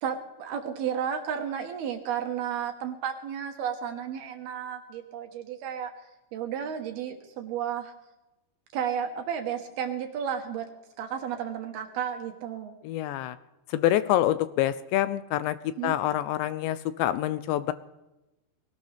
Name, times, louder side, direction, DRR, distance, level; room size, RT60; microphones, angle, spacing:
voice 1, 0.0-5.9 6.3-7.9 8.7-10.7 11.0-12.7 15.8-16.0, right 8 dB, 65° right, 4 dB, 2.8 m, -32 dB
voice 2, 12.8-13.4 13.7-15.6 15.8-17.7, left 13 dB, 80° left, 14 dB, 2.7 m, -26 dB
21.0 x 18.0 x 3.4 m, 0.99 s
omnidirectional pair, 5.4 m